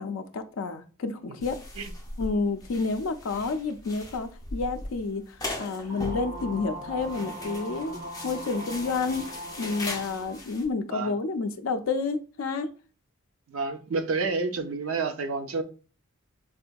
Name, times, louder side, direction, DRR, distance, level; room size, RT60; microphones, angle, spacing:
voice 1, 0.0-1.6 2.2-12.7, left 4 dB, 75° left, 0.4 m, -30 dB
sound 1, 1.4-10.7, left 1 dB, 15° left, 0.5 m, -39 dB
sound 2, 5.9-10.4, right 1 dB, 20° right, 1.6 m, -40 dB
voice 2, 13.5-15.6, right 4 dB, 80° right, 0.5 m, -29 dB
4.2 x 2.6 x 2.2 m
head